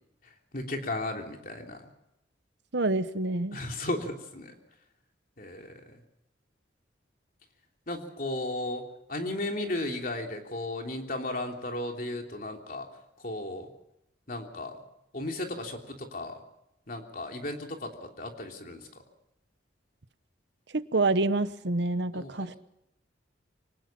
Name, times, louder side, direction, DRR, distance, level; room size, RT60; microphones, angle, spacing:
voice 1, 0.5-1.8 3.5-4.5 5.4-6.0 7.9-8.8 9.1-12.9 13.2-13.7 14.3-14.8 15.1-16.4 16.9-18.9 22.1-22.5, left 1 dB, 45° left, 3 dB, 3.2 m, -35 dB
voice 2, 2.7-3.6 20.7-22.5, right 2 dB, 65° right, 13 dB, 1.0 m, -27 dB
25.0 x 18.5 x 5.9 m, 0.84 s
head